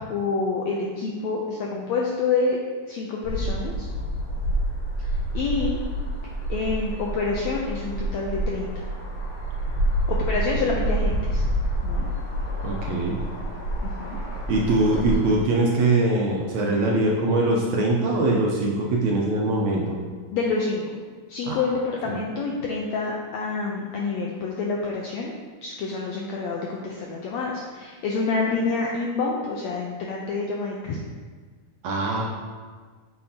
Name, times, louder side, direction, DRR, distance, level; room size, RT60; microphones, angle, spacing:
voice 1, 0.0-2.6 2.9-3.9 5.0-5.1 5.3-5.8 6.5-8.9 10.1-11.4 11.8-12.1 13.8-14.2 14.9-15.1 20.3-20.8 21.3-25.3 25.6-31.0, left 4 dB, 90° left, -1 dB, 1.5 m, -27 dB
sound 1, 3.2-15.3, right 1 dB, 65° left, 2.9 m, -28 dB
voice 2, 12.6-13.2 14.5-20.0 21.5-21.6 22.1-22.2 31.8-32.2, right 2 dB, 75° right, -2 dB, 1.8 m, -22 dB
8.7 x 6.5 x 2.8 m, 1.5 s
omnidirectional pair, 3.9 m